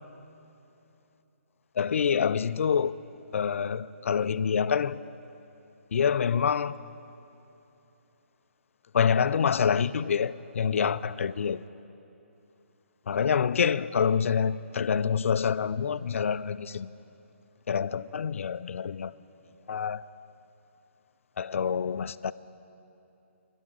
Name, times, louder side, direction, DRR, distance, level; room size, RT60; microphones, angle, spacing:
voice 1, 1.8-2.9 3.3-5.0 5.9-6.8 8.9-11.6 13.1-16.9 17.7-19.1 19.7-20.0 21.4-22.3, left 7 dB, 70° left, 0.4 m, -26 dB
20.5 x 11.5 x 3.8 m
hypercardioid pair, 160°, 7 cm